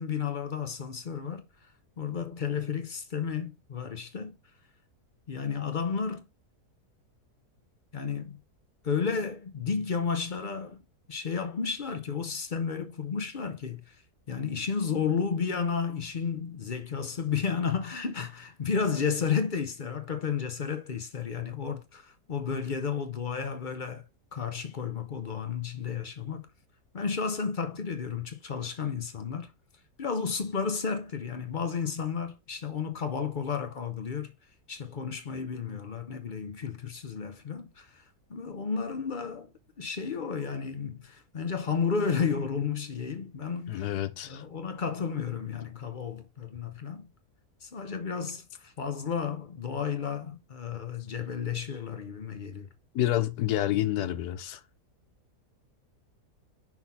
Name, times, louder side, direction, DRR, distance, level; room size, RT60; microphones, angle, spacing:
voice 1, 0.0-1.4 2.0-4.4 5.3-6.3 7.9-8.4 8.8-10.8 11.1-14.0 14.3-24.0 24.3-26.5 26.9-29.5 30.0-34.3 34.7-38.0 38.3-39.5 39.8-43.9 44.2-47.1 47.6-52.7, left 6 dB, 45° left, 0.6 m, -32 dB
voice 2, 43.7-44.4 52.9-54.6, left 13 dB, 80° left, 1.2 m, -28 dB
5.8 x 3.9 x 4.2 m
omnidirectional pair, 1.7 m